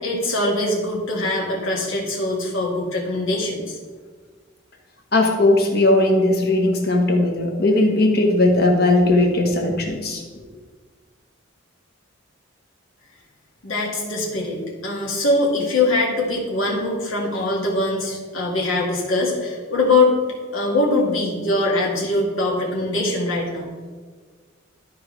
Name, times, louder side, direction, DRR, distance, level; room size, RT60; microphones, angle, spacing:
voice 1, 0.0-3.8 13.6-20.1 20.5-23.7, left 2 dB, 80° left, -3 dB, 2.1 m, -22 dB
voice 2, 5.1-10.2, left 2 dB, 50° left, 2 dB, 1.3 m, -18 dB
12.5 x 4.8 x 3.3 m, 1.5 s
head